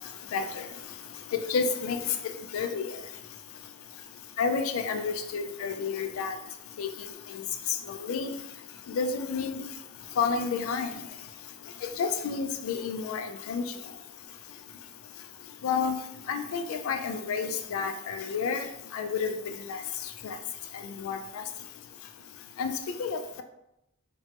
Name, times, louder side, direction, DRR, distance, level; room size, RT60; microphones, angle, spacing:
voice 1, 0.3-0.6 1.5-2.0 2.5-2.9 4.4-6.4 6.8-6.9 7.3-7.4 7.9-8.3 8.9-9.6 10.2-10.9 12.0-13.6 15.6-16.0 16.3-18.7 18.9-19.3 19.7-19.8 20.2-20.4 21.0-21.4 22.6-22.7 23.0-23.4, left 5 dB, 80° left, 7 dB, 0.3 m, -30 dB
3.0 x 2.1 x 2.8 m, 0.84 s
head